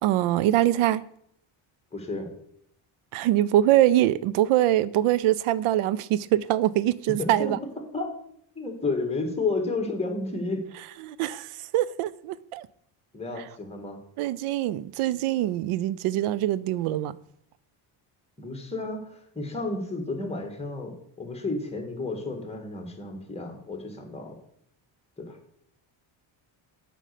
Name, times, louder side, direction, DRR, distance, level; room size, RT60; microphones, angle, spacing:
voice 1, 0.0-1.0 3.1-7.6 11.0-12.7 13.4-13.5 14.2-17.2, right 13 dB, 85° right, 0.5 m, -23 dB
voice 2, 1.9-2.3 7.2-7.5 7.9-8.1 8.5-10.7 13.1-14.0 18.4-24.3 25.2-25.4, left 3 dB, 10° left, 1.7 m, -31 dB
7.5 x 5.4 x 6.6 m
cardioid pair, 135°, 49 cm